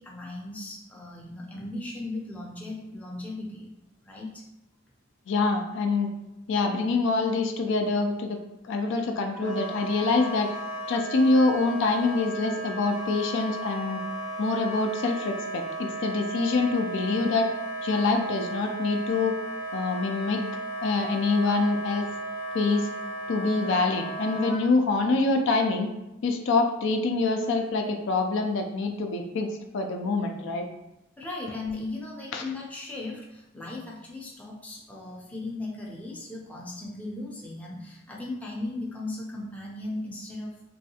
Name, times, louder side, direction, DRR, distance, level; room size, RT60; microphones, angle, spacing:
voice 1, 0.0-3.7 4.0-4.4 31.2-40.6, left 2 dB, 5° left, -3 dB, 0.5 m, -37 dB
voice 2, 5.3-6.1 6.5-8.4 8.6-10.5 10.9-14.0 14.4-17.5 17.8-19.3 19.7-20.4 20.8-22.1 22.5-22.9 23.3-25.9 26.2-30.6 32.3-32.4, left 3 dB, 65° left, 4 dB, 0.4 m, -25 dB
Wind instrument woodwind instrument, 9.3-24.6, right 2 dB, 75° right, 1.1 m, -35 dB
3.2 x 2.7 x 2.7 m, 0.93 s
head